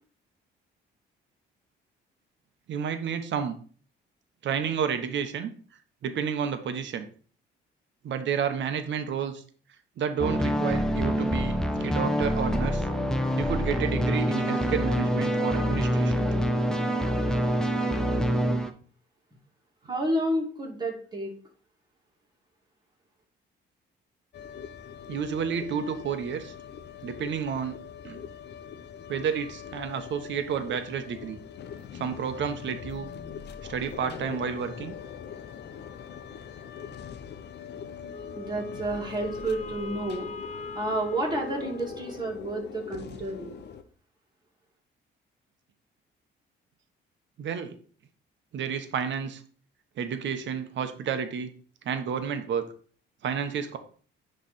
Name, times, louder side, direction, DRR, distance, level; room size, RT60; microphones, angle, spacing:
voice 1, 2.7-3.5 4.4-5.5 6.0-7.1 8.0-9.4 10.0-12.9 13.4-16.3 25.1-26.5 27.0-27.8 28.0-28.2 29.1-31.4 31.9-33.1 33.7-35.0 47.4-47.8 48.5-49.4 50.0-51.5 51.8-52.6 53.2-53.8, right 7 dB, 65° right, 8 dB, 1.0 m, -30 dB
sound 1, 10.2-18.7, equal, 5° left, 0.8 m, -26 dB
voice 2, 19.8-21.3 38.4-40.3 40.7-43.7, right 1 dB, 20° right, -1 dB, 2.5 m, -30 dB
sound 2, 24.3-43.8, left 7 dB, 60° left, 0.8 m, -42 dB
Wind instrument woodwind instrument, 38.1-42.5, left 3 dB, 35° left, 1.2 m, -41 dB
9.8 x 3.4 x 4.2 m, 0.43 s
cardioid pair, 90°, 20 cm